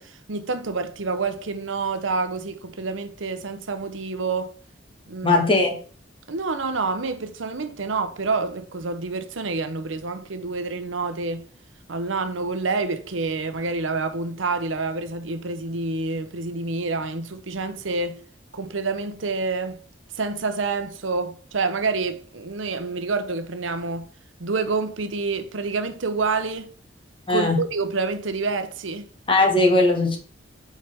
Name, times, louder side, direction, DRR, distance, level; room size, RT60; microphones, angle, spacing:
voice 1, 0.0-4.5 5.1-5.4 6.3-11.5 11.9-18.2 18.5-19.8 20.2-24.1 24.4-26.7 27.3-29.1, right 4 dB, 85° right, 0.9 m, -28 dB
voice 2, 5.2-5.7 27.3-27.6 29.3-30.2, left 2 dB, 25° left, 1.6 m, -18 dB
8.9 x 4.6 x 3.5 m
head